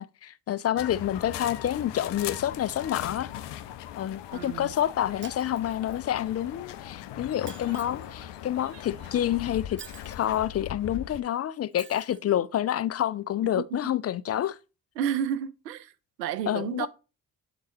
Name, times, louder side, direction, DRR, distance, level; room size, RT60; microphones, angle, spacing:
voice 1, 0.0-3.3 4.0-9.8 10.1-14.6 16.5-16.9, left 11 dB, 35° left, 0.4 m, -28 dB
sound 1, 0.8-11.2, left 11 dB, 60° left, 0.8 m, -39 dB
voice 2, 4.3-4.7 13.7-13.8 15.0-15.9 16.2-16.9, right 9 dB, 85° right, 0.6 m, -31 dB
Female speech woman speaking / Yell, 5.0-5.3 5.6-5.8 6.1-6.4 7.1-9.5, right 6 dB, 60° right, 1.5 m, -55 dB
Shatter, 5.2-6.2 7.5-8.2 9.8-10.4 11.8-12.3, right 7 dB, 25° right, 0.6 m, -48 dB
9.6 x 3.9 x 4.1 m
figure-of-eight pair, 40°, 48 cm